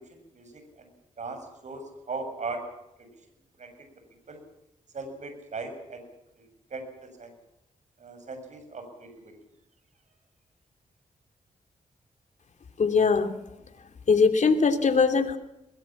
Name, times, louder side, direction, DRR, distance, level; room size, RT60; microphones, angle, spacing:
voice 1, 0.1-0.9 1.2-1.4 1.6-1.8 2.1-2.6 3.0-3.1 3.6-3.9 4.3-4.4 4.9-6.0 6.4-6.5 6.7-6.8 7.2-7.3 8.0-9.3, right 3 dB, 60° right, 7 dB, 7.0 m, -38 dB
voice 2, 12.8-13.4 14.1-15.4, left 5 dB, 60° left, 8 dB, 3.0 m, -21 dB
22.0 x 21.5 x 7.4 m, 0.88 s
cardioid pair, 75°, 14 cm